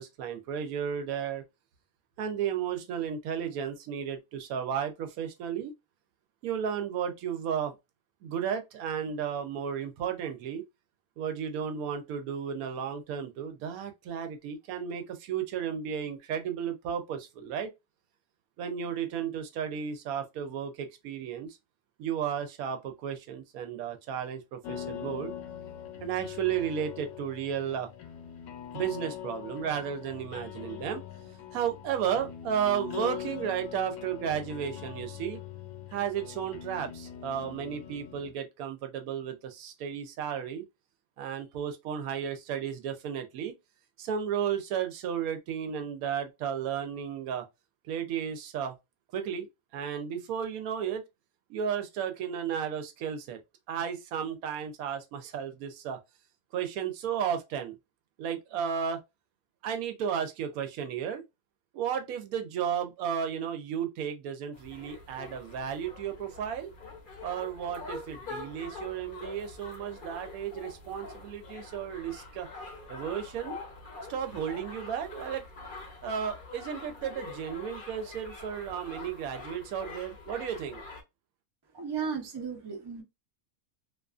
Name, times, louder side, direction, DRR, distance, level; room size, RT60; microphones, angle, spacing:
voice 1, 0.0-1.4 2.2-5.7 6.4-7.7 8.2-10.6 11.2-17.7 18.6-21.6 22.0-25.3 26.0-27.9 28.7-31.0 31.5-35.4 35.9-40.6 41.2-43.5 44.0-47.5 47.9-48.7 49.1-49.5 49.7-51.0 51.5-53.4 53.7-56.0 56.5-57.8 58.2-59.0 59.6-61.2 61.7-66.7 67.2-72.5 72.9-73.6 74.1-75.5 76.0-80.8, right 8 dB, 85° right, 1.0 m, -33 dB
sound 1, 24.6-38.3, left 10 dB, 75° left, 1.0 m, -42 dB
sound 2, 64.5-81.0, left 3 dB, 50° left, 0.6 m, -45 dB
voice 2, 81.7-83.0, right 6 dB, 35° right, 0.4 m, -35 dB
2.5 x 2.4 x 2.3 m
omnidirectional pair, 1.5 m